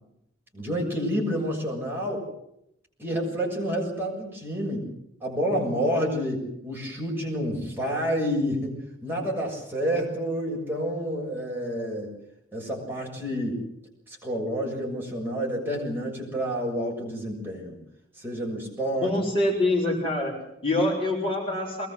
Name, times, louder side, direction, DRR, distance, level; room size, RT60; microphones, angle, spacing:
voice 1, 0.5-2.3 3.0-4.9 5.2-12.1 12.5-13.6 14.1-17.8 18.2-19.1, equal, 10° right, -2 dB, 7.0 m, -29 dB
voice 2, 19.0-21.9, left 1 dB, 30° left, 0 dB, 6.4 m, -25 dB
23.0 x 20.5 x 8.0 m, 0.77 s
head